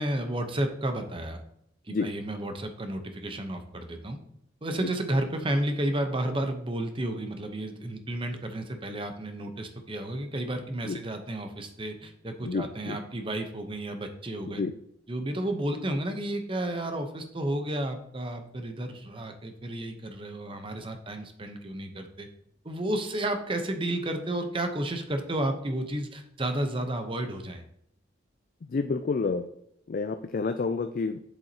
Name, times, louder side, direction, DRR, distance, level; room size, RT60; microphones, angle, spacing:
voice 1, 0.0-1.4 1.9-4.2 4.6-14.6 15.1-22.3 22.6-27.6, right 1 dB, 30° right, 6 dB, 0.9 m, -32 dB
voice 2, 12.4-13.0 14.4-14.7 28.7-29.5 29.9-31.2, left 4 dB, 45° left, 8 dB, 0.4 m, -29 dB
8.1 x 7.1 x 2.9 m, 0.73 s
head